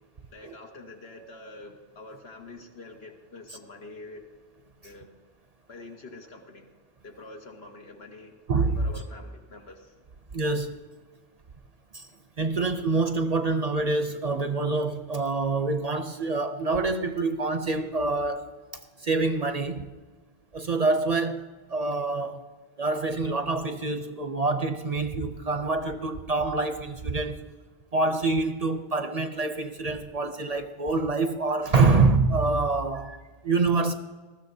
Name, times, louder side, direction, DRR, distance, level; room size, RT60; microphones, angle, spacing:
voice 1, 0.3-4.2 4.8-5.1 5.7-6.7 7.0-8.3 8.8-9.9, left 2 dB, 75° left, 1.7 m, -45 dB
voice 2, 8.5-8.8 10.3-10.7 11.9-12.1 12.4-18.5 19.0-19.9 20.5-22.4 22.8-27.4 27.9-33.2 33.4-33.9, right 3 dB, 45° right, 0.6 m, -26 dB
20.0 x 13.5 x 2.7 m
omnidirectional pair, 1.1 m